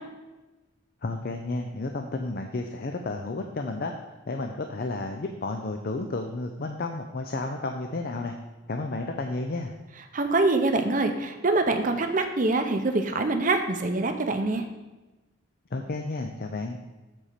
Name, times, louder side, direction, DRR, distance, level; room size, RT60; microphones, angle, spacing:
voice 1, 1.0-3.9 4.3-8.3 8.7-9.7 15.7-16.8, left 2 dB, 50° left, 4 dB, 0.5 m, -32 dB
voice 2, 10.1-14.6, right 2 dB, 40° right, 6 dB, 0.7 m, -24 dB
7.5 x 4.3 x 6.6 m, 1.1 s
head